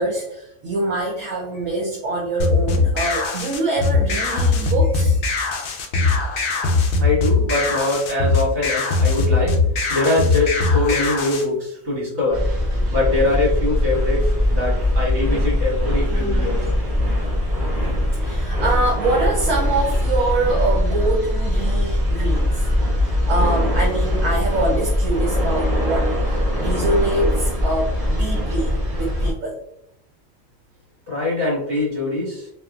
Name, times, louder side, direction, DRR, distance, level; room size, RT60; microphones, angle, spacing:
voice 1, 0.0-5.2 12.8-12.9 16.1-16.5 18.1-29.6, right 2 dB, 75° right, -2 dB, 1.0 m, -25 dB
sound 1, 2.4-11.4, left 3 dB, 65° left, 0.5 m, -20 dB
voice 2, 7.0-9.6 9.9-12.5 12.9-16.6 31.1-32.5, left 2 dB, 55° right, -5 dB, 1.7 m, -23 dB
sound 2, 12.3-29.3, left 1 dB, 35° right, 1.1 m, -21 dB
2.9 x 2.4 x 2.3 m, 0.76 s
omnidirectional pair, 1.4 m